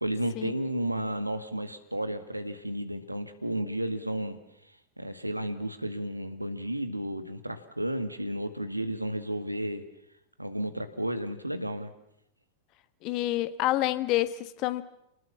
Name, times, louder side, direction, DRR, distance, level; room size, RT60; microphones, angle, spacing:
voice 1, 0.0-4.4 5.0-9.8 10.4-11.9, right 1 dB, 85° right, 10 dB, 1.9 m, -32 dB
voice 2, 13.0-14.8, left 15 dB, 40° left, 14 dB, 1.5 m, -28 dB
29.5 x 20.0 x 7.3 m, 0.79 s
figure-of-eight pair, 90°, 0 cm